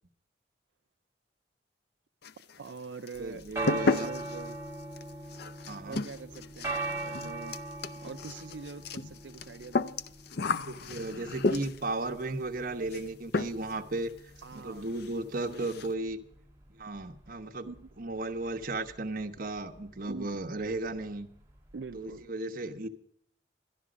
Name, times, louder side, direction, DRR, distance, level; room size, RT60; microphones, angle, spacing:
sound 1, 2.2-2.8 3.1-12.0 12.9-13.1 13.3-13.8 14.1-14.2 14.6-14.7 14.9-15.1 15.4-15.9, left 3 dB, 65° left, 0.6 m, -33 dB
voice 1, 2.6-4.6 5.8-7.6 8.0-9.8 14.4-15.1 15.5-15.9 17.7-17.9 20.1-20.4 21.7-22.2, right 4 dB, 85° right, 8 dB, 0.5 m, -44 dB
sound 2, 3.2-22.3, right 2 dB, 15° right, 1.9 m, -42 dB
voice 2, 3.2-4.1 5.7-6.0 10.6-14.1 14.5-16.2 16.7-17.7 18.0-21.3 21.9-22.9, right 2 dB, 55° right, 5 dB, 1.1 m, -35 dB
12.5 x 11.5 x 5.1 m, 0.69 s
head